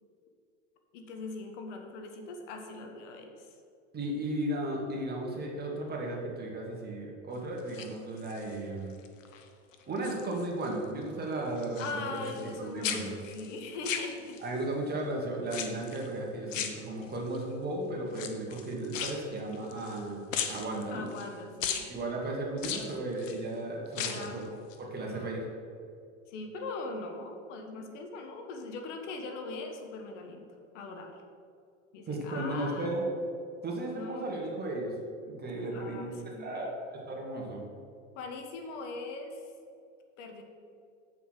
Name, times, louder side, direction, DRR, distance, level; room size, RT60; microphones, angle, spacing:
voice 1, 0.9-3.6 11.8-14.4 20.9-21.9 24.0-24.5 25.0-25.3 26.3-31.2 31.9-32.9 33.9-34.4 35.7-36.7 38.1-39.5 40.2-40.4, left 3 dB, 65° left, 4 dB, 1.5 m, -41 dB
voice 2, 3.9-8.9 9.9-13.1 14.4-20.2 20.5-21.1 21.9-24.4 24.8-25.5 32.1-33.0 33.6-34.9 35.3-36.1 36.4-37.6, right 1 dB, 25° right, -1 dB, 2.2 m, -35 dB
sound 1, 7.6-8.6 9.0-9.4 9.7-10.8 11.0-12.6 12.8-14.6 15.5-16.1 16.5-17.4 18.1-20.0 20.3-21.3 21.6-21.9 22.6-23.4 23.9-24.4 24.7-24.8, left 8 dB, 85° left, 1.1 m, -37 dB
8.4 x 5.5 x 6.5 m, 2.4 s
hypercardioid pair, 110°, 38 cm